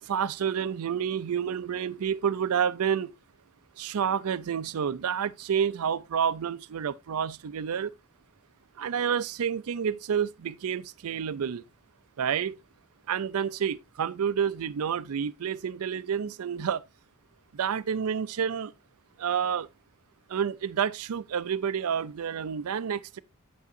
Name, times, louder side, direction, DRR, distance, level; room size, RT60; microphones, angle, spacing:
voice 1, 0.0-3.1 3.8-7.9 8.8-11.6 12.2-12.6 13.1-16.8 17.5-18.7 19.2-19.7 20.3-23.2, right 7 dB, 80° right, 0.4 m, -29 dB
8.5 x 8.3 x 2.6 m
head